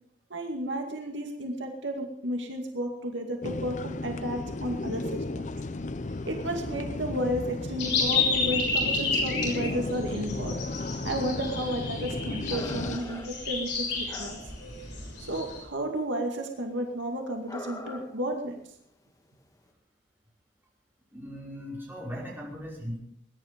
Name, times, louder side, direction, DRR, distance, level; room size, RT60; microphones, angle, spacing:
voice 1, 0.3-5.4 6.3-10.6 11.0-14.5 15.2-18.6, right 1 dB, 80° right, 3 dB, 2.3 m, -32 dB
sound 1, 3.4-13.0, left 2 dB, 40° left, 0.6 m, -34 dB
sound 2, 7.8-15.6, left 4 dB, 65° left, 7.1 m, -31 dB
sound 3, 10.9-11.0 11.2-11.9 12.3-14.8 15.0-15.8 16.1-16.2 16.6-16.7 17.5-18.3 18.6-18.7 19.4-19.5, left 1 dB, 20° left, 1.6 m, -43 dB
voice 2, 21.1-23.0, equal, 10° right, -4 dB, 5.4 m, -38 dB
20.5 x 10.5 x 5.2 m, 0.69 s
head